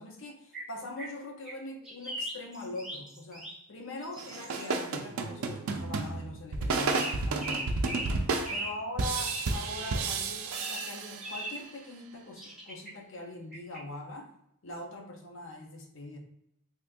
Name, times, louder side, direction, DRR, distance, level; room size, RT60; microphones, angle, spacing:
voice 1, 0.0-7.8 8.5-14.3 14.6-16.2, left 2 dB, 60° left, 2 dB, 0.7 m, -42 dB
sound 1, 0.5-1.6 1.8-3.6 4.0-4.7 6.9-8.2 8.4-8.8 9.1-9.5 10.5-10.9 11.2-11.6 12.4-12.9 13.5-13.8, right 1 dB, ahead, 1.0 m, -39 dB
sound 2, 4.2-11.6, right 3 dB, 80° right, 0.4 m, -32 dB
2.8 x 2.5 x 3.5 m, 0.77 s
head